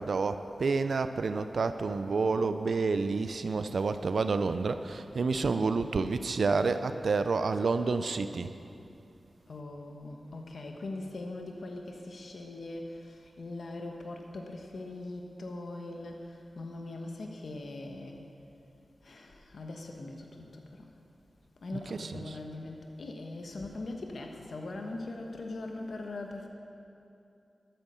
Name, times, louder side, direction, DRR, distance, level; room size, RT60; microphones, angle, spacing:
voice 1, 0.0-8.5 21.7-22.4, right 4 dB, 75° right, 10 dB, 0.5 m, -29 dB
voice 2, 9.5-18.2 19.0-20.9 21.6-26.5, left 2 dB, 70° left, 2 dB, 1.3 m, -41 dB
13.0 x 9.2 x 6.8 m, 2.7 s
wide cardioid pair, 70°, 0 cm